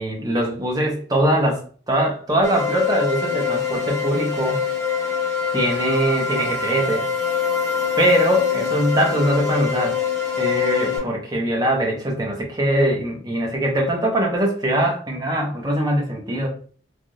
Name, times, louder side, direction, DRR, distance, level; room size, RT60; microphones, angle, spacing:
voice 1, 0.0-1.6 1.9-4.6 5.5-7.0 8.0-10.0 10.4-16.5, right 1 dB, 20° right, 0 dB, 0.7 m, -22 dB
sound 1, 2.4-11.0, left 6 dB, 15° left, 1.2 m, -24 dB
3.4 x 2.4 x 2.6 m, 0.43 s
head